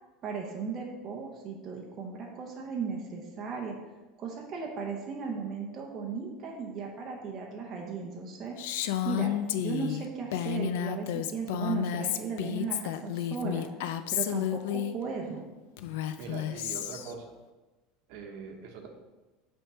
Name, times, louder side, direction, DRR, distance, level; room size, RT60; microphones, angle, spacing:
voice 1, 0.2-3.8 4.2-8.6 9.0-9.3 9.6-13.7 14.1-15.4, right 5 dB, 30° right, -1 dB, 0.8 m, -36 dB
Female speech woman speaking, 8.6-14.9 15.8-17.1, left 11 dB, 80° left, 0.4 m, -31 dB
voice 2, 16.2-17.3 18.1-18.9, right 5 dB, 60° right, 3 dB, 1.0 m, -42 dB
5.7 x 3.6 x 5.5 m, 1.2 s
cardioid pair, 165°, 0 cm